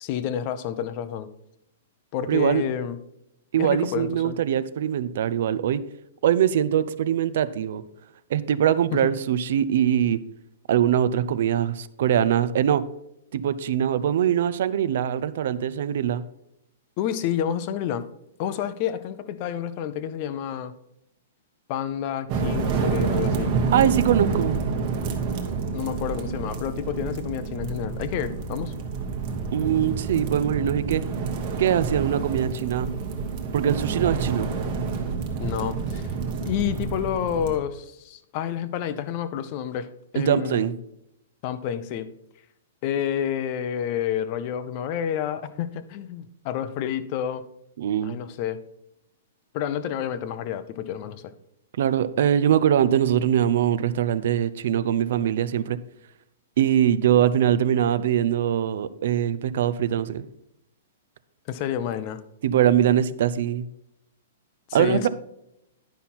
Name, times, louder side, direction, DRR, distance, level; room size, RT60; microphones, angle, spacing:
voice 1, 0.0-1.3 2.1-3.0 3.6-4.4 8.9-9.1 17.0-18.0 18.4-20.7 21.7-23.5 25.7-28.7 35.4-36.0 36.5-39.9 40.1-40.7 41.4-42.1 42.8-47.4 48.0-48.6 49.5-51.3 61.5-62.2 64.7-65.1, left 9 dB, 30° left, 13 dB, 0.5 m, -29 dB
voice 2, 2.3-2.6 3.5-5.8 6.2-7.8 8.3-10.2 10.7-12.8 13.3-16.2 23.7-24.6 29.5-31.1 31.6-32.9 33.5-34.5 40.1-40.7 47.8-48.2 51.8-55.8 56.6-60.3 62.4-63.7 64.7-65.1, right 10 dB, 55° right, 16 dB, 0.4 m, -22 dB
sound 1, 22.3-37.6, right 5 dB, 30° right, 1.1 m, -28 dB
10.5 x 5.7 x 4.2 m, 0.80 s
hypercardioid pair, 175°, 0 cm